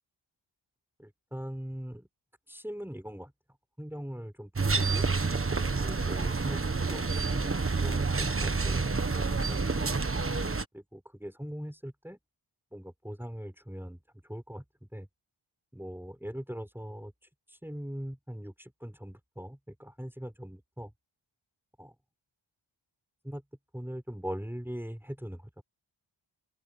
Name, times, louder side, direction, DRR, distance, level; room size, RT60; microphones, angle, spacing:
voice 1, 1.0-2.1 2.5-3.3 3.8-5.1 5.8-6.6 6.9-8.8 10.7-12.2 12.7-15.1 15.7-17.1 17.6-20.9 21.8-21.9 23.2-23.4 23.7-25.6, equal, 5° right, 6.5 m, -41 dB
sound 1, 4.6-10.7, right 4 dB, 25° right, 1.3 m, -28 dB
open air
wide cardioid pair, 120°, 49 cm